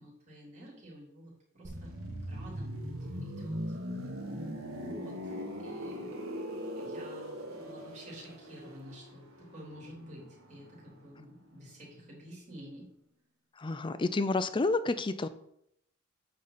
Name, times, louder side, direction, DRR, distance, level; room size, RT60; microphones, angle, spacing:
voice 1, 0.0-2.9 3.2-4.1 4.6-5.3 5.6-6.2 6.8-12.9, equal, 35° right, -5 dB, 3.2 m, -50 dB
sound 1, 1.6-11.3 11.6-11.8, equal, 85° right, 1.1 m, -40 dB
voice 2, 13.6-15.3, left 3 dB, 25° left, 12 dB, 0.4 m, -29 dB
8.5 x 3.9 x 5.8 m, 0.74 s
head